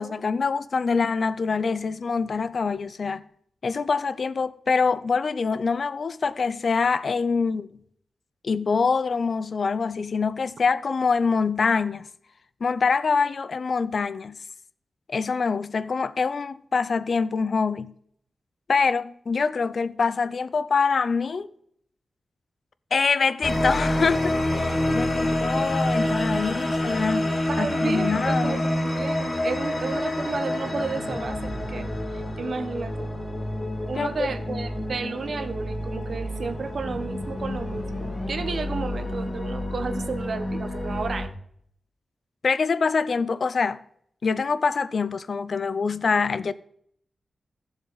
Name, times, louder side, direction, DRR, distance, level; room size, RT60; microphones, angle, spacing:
voice 1, 0.0-3.2 3.6-7.7 8.4-12.1 12.6-14.4 15.1-17.9 18.7-21.5 22.9-27.3 27.6-28.7 33.9-34.3 42.4-43.8 44.2-46.5, left 5 dB, 55° left, 0.5 m, -25 dB
sound 1, 23.4-41.3, left 1 dB, 30° left, 2.0 m, -28 dB
voice 2, 27.5-31.9 32.4-33.1 33.9-41.3, right 4 dB, 60° right, 0.9 m, -32 dB
15.5 x 7.1 x 4.0 m
wide cardioid pair, 115°, 0 cm